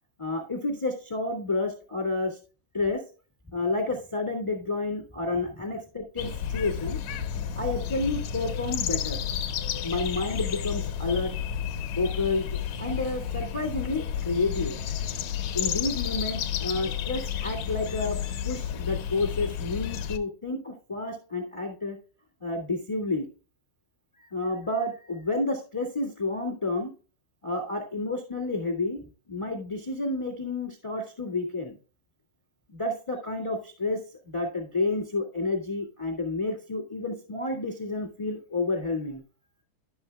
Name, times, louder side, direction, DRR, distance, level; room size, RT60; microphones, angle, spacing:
voice 1, 0.2-2.4 2.7-3.0 3.5-7.0 7.5-9.2 9.8-11.3 11.9-14.8 15.5-18.2 18.4-22.0 22.4-23.2 24.2-26.9 27.4-31.7 32.7-34.0 34.2-39.2, left 2 dB, 50° left, 1 dB, 0.3 m, -30 dB
sound 1, 6.2-20.2, left 9 dB, 85° left, 1.5 m, -31 dB
11.0 x 7.9 x 2.2 m, 0.36 s
omnidirectional pair, 4.2 m